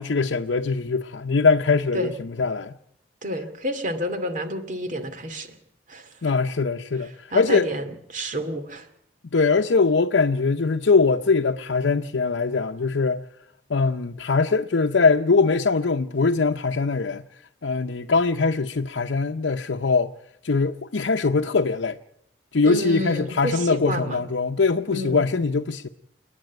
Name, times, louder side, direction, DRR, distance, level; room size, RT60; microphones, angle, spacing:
voice 1, 0.0-2.7 6.2-7.7 9.3-13.2 13.7-17.2 17.6-20.1 20.4-22.0 22.5-25.9, left 4 dB, 90° left, 0.7 m, -22 dB
voice 2, 3.2-5.6 5.9-6.1 7.3-8.9 22.6-24.2 24.9-25.2, equal, 45° right, 2.4 m, -29 dB
29.0 x 9.8 x 9.3 m
head